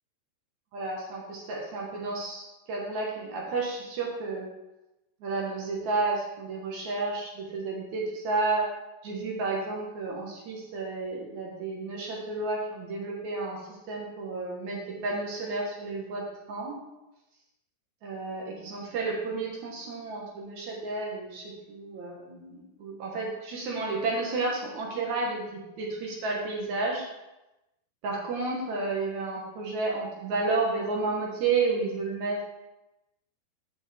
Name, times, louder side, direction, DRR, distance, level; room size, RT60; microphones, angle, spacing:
voice 1, 0.7-4.5 5.2-8.7 9.0-13.6 13.9-16.7 18.0-27.0 28.0-32.4, right 3 dB, 60° right, -3 dB, 2.1 m, -31 dB
7.8 x 7.2 x 3.5 m, 0.96 s
omnidirectional pair, 4.9 m